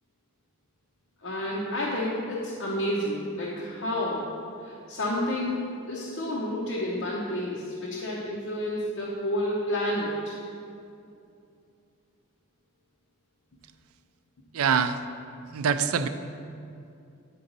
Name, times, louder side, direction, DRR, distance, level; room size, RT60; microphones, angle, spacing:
voice 1, 1.2-4.3 4.6-5.6 5.9-10.4, left 1 dB, 60° left, -5 dB, 0.9 m, -30 dB
voice 2, 14.5-15.0 15.5-16.1, right 6 dB, 75° right, 10 dB, 0.4 m, -24 dB
9.5 x 3.9 x 5.3 m, 2.6 s
head